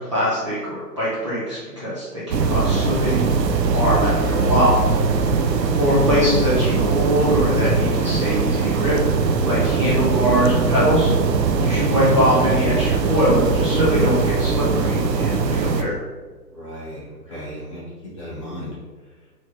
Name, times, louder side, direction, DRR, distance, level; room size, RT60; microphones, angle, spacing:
voice 1, 0.0-3.3 3.6-5.1 5.7-11.1 11.6-15.9, equal, 20° right, -11 dB, 0.6 m, -22 dB
sound 1, 2.3-15.8, right 4 dB, 90° right, 0.6 m, -20 dB
voice 2, 16.5-17.8 18.2-18.7, equal, 20° left, -9 dB, 0.7 m, -35 dB
4.3 x 3.0 x 2.9 m, 1.3 s
hypercardioid pair, 150°, 49 cm